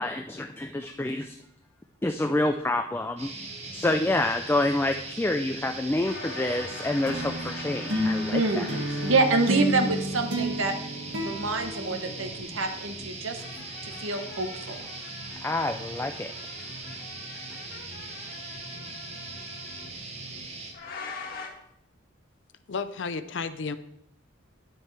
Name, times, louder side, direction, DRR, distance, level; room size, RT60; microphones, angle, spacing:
voice 1, 0.0-1.3 2.0-3.3 3.7-8.6 15.4-16.3, left 2 dB, 10° left, 6 dB, 0.3 m, -27 dB
sound 1, 3.2-20.7, right 3 dB, 35° right, 1.0 m, -40 dB
sound 2, 6.0-9.9 11.8-12.5 13.3-19.9 20.7-21.5, left 4 dB, 50° left, 1.5 m, -43 dB
sound 3, 7.1-12.7, equal, 70° right, 1.6 m, -31 dB
voice 2, 8.3-10.7 11.2-13.4 13.8-14.8, right 3 dB, 90° right, 6 dB, 1.0 m, -27 dB
voice 3, 22.7-23.8, left 5 dB, 65° left, 11 dB, 0.6 m, -32 dB
10.5 x 7.5 x 3.3 m, 0.78 s
head